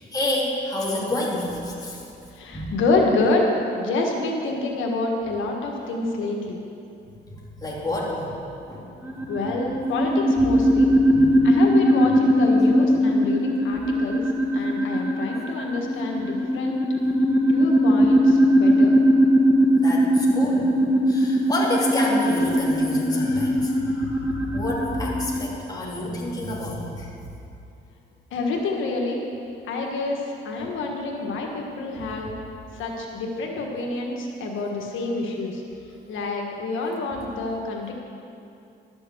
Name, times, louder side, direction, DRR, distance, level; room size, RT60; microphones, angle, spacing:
voice 1, 0.0-2.0 2.5-2.7 7.6-8.3 8.7-8.8 11.1-11.3 19.8-20.7 21.1-27.1, left 1 dB, 20° left, -5 dB, 2.8 m, -28 dB
voice 2, 2.3-3.5 3.8-6.6 9.3-10.9 11.4-14.2 14.5-16.8 17.5-19.0 28.3-29.2 29.7-32.3 32.7-35.6 36.1-37.9, left 3 dB, 80° left, 0 dB, 1.4 m, -27 dB
sound 1, 9.0-25.4, equal, 10° right, 1.3 m, -20 dB
12.0 x 7.0 x 7.8 m, 2.7 s
cardioid pair, 90°, 20 cm